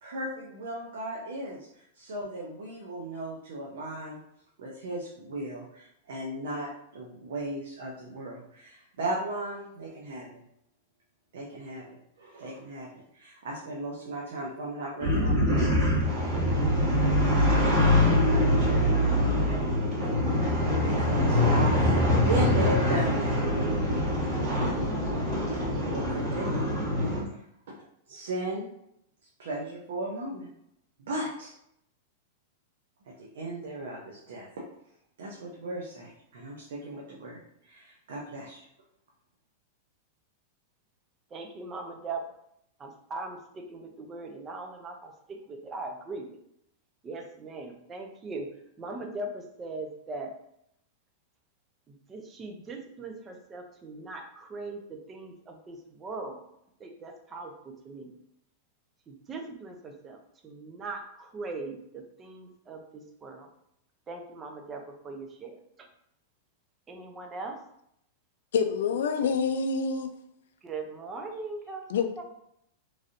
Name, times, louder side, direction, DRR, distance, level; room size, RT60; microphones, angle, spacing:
voice 1, 0.0-4.2 4.6-10.3 11.3-11.8 12.2-15.7 17.2-19.4 20.8-23.4 25.5-26.7 28.1-28.7 29.4-30.5 31.0-31.5 33.1-34.5 35.2-38.6, right 1 dB, 80° right, -3 dB, 0.6 m, -36 dB
sound 1, 15.0-27.2, left 1 dB, 45° right, 1.4 m, -24 dB
voice 2, 41.3-42.2 42.8-46.4 47.0-48.5 48.8-50.3 51.9-56.4 56.8-58.1 59.1-60.2 60.4-63.5 64.1-65.5 66.9-67.6 70.6-71.8 72.2-72.3, right 3 dB, 20° right, 3 dB, 0.5 m, -40 dB
voice 3, 68.5-70.1 71.9-72.1, left 5 dB, 80° left, 8 dB, 0.4 m, -26 dB
3.2 x 2.7 x 2.5 m, 0.75 s
supercardioid pair, 150°, 0 cm